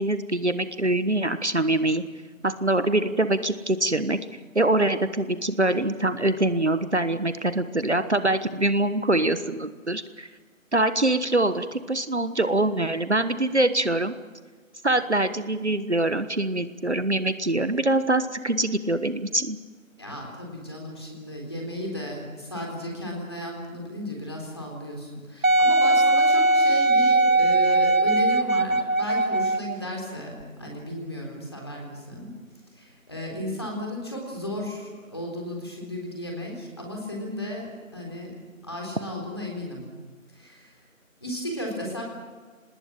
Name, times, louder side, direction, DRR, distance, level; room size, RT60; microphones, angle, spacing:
voice 1, 0.0-2.0 2.4-4.2 4.5-10.3 10.7-14.1 14.8-19.6, right 2 dB, 55° right, 12 dB, 1.3 m, -24 dB
voice 2, 20.0-32.3 32.7-38.3 38.6-39.8 40.3-40.8 41.2-42.0, equal, 20° left, -1 dB, 3.8 m, -34 dB
Wind instrument woodwind instrument, 25.4-29.7 30.4-30.5, right 2 dB, 80° right, 1.2 m, -20 dB
26.0 x 20.0 x 7.3 m, 1.4 s
figure-of-eight pair, 175°, 41 cm